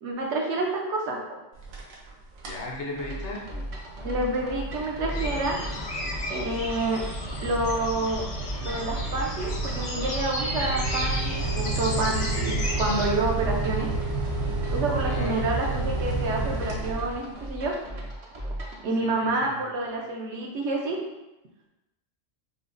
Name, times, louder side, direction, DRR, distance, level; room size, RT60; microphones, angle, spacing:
voice 1, 0.0-1.2 4.0-5.6 6.3-7.0 7.4-8.3 8.6-13.9 14.7-17.7 18.8-21.0, right 2 dB, 70° right, -1 dB, 0.9 m, -28 dB
sound 1, 1.6-2.1 2.4-2.7 3.2-17.5, right 3 dB, 90° right, 1.1 m, -31 dB
voice 2, 2.4-3.4 15.0-15.5 19.0-19.6, left 2 dB, 65° left, -2 dB, 1.0 m, -36 dB
sound 2, 3.0-18.8, right 1 dB, 45° right, 0.4 m, -38 dB
sound 3, 5.1-13.1, left 1 dB, 45° left, 0.6 m, -34 dB
5.3 x 2.1 x 2.5 m, 0.99 s
omnidirectional pair, 1.3 m